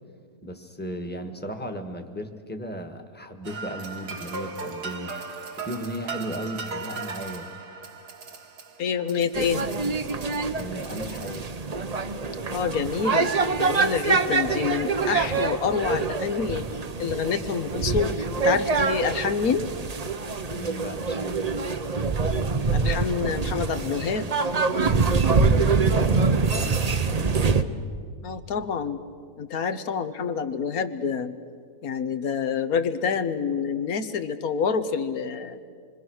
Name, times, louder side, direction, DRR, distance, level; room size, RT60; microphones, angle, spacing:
voice 1, 0.4-5.1 5.6-7.5 10.5-11.5 20.5-21.4 25.5-27.3, equal, 5° left, 5 dB, 1.5 m, -36 dB
sound 1, 3.4-11.8, right 4 dB, 75° right, 2.0 m, -38 dB
voice 2, 8.8-9.6 12.5-13.3 13.6-16.7 17.0-19.7 22.7-24.3 28.2-29.0 29.4-31.3 31.8-35.6, left 6 dB, 65° left, 11 dB, 1.5 m, -27 dB
sound 2, 9.3-27.6, right 4 dB, 35° right, 0.6 m, -25 dB
27.0 x 24.0 x 6.4 m, 2.1 s
omnidirectional pair, 1.7 m